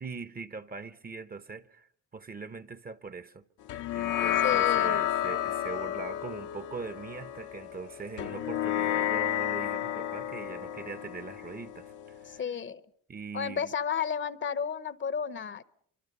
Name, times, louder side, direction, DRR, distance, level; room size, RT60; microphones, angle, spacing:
voice 1, 0.0-3.4 3.9-12.4 13.1-13.7, right 5 dB, 30° right, 0.9 m, -41 dB
sound 1, 3.7-12.4, left 12 dB, 80° left, 0.9 m, -31 dB
voice 2, 4.4-5.0 12.3-12.8 13.3-15.6, left 7 dB, 40° left, 0.8 m, -32 dB
25.0 x 25.0 x 5.4 m
cardioid pair, 90°, 30 cm